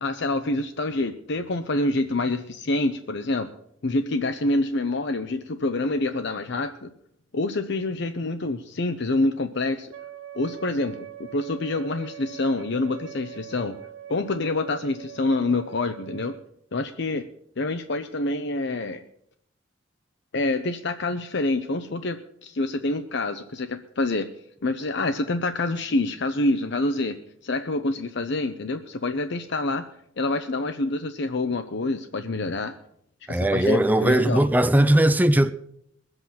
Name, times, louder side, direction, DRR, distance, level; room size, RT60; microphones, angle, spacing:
voice 1, 0.0-3.5 3.8-6.9 7.3-9.9 10.4-13.8 14.1-16.4 16.7-17.3 17.6-19.0 20.3-24.3 24.6-27.2 27.4-29.9 30.2-32.7 33.3-34.5, left 2 dB, 60° left, 0.8 m, -26 dB
Wind instrument woodwind instrument, 9.9-16.5, right 11 dB, 85° right, 1.0 m, -42 dB
voice 2, 33.3-35.5, right 1 dB, 10° right, 0.4 m, -19 dB
21.0 x 8.0 x 5.8 m
head